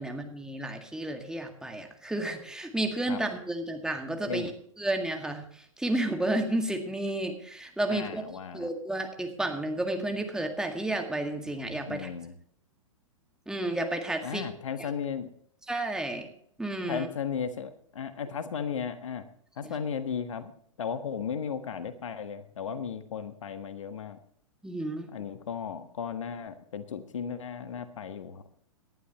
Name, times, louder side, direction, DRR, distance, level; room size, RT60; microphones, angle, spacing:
voice 1, 0.0-4.5 4.8-8.2 8.5-12.1 13.5-14.5 14.8-14.9 15.7-16.3 16.6-17.1 19.6-19.7 24.6-25.1, right 1 dB, 5° right, 4 dB, 1.9 m, -31 dB
voice 2, 7.9-8.7 11.9-12.3 14.2-15.3 16.9-19.2 19.6-20.5 20.8-24.2 25.1-28.5, left 7 dB, 65° left, 10 dB, 1.4 m, -35 dB
19.0 x 11.5 x 3.0 m, 0.63 s
figure-of-eight pair, 110°, 17 cm